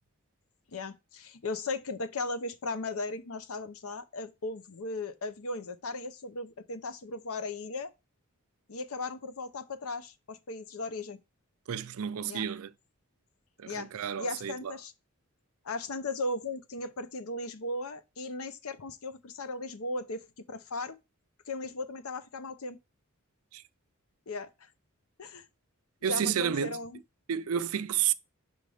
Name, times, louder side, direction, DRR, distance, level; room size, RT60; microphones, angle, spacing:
voice 1, 0.7-7.9 8.7-11.2 12.3-12.5 13.6-13.9 14.2-14.9 15.6-21.0 21.5-22.8 24.3-24.7 25.2-25.4 26.1-27.0, left 2 dB, 70° left, 0.7 m, -37 dB
voice 2, 11.7-12.7 13.6-14.7 23.5-23.6 26.0-26.7 27.3-28.1, right 9 dB, 70° right, 0.4 m, -31 dB
5.5 x 4.0 x 4.9 m
head